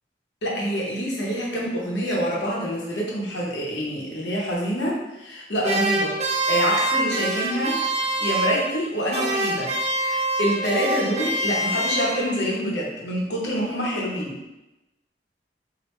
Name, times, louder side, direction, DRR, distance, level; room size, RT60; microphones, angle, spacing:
voice 1, 0.4-7.8 8.2-14.4, equal, 80° left, -3 dB, 0.9 m, -26 dB
sound 1, 5.6-8.9 9.1-12.5, right 2 dB, 35° right, 0.4 m, -25 dB
3.1 x 2.6 x 3.1 m, 0.99 s
head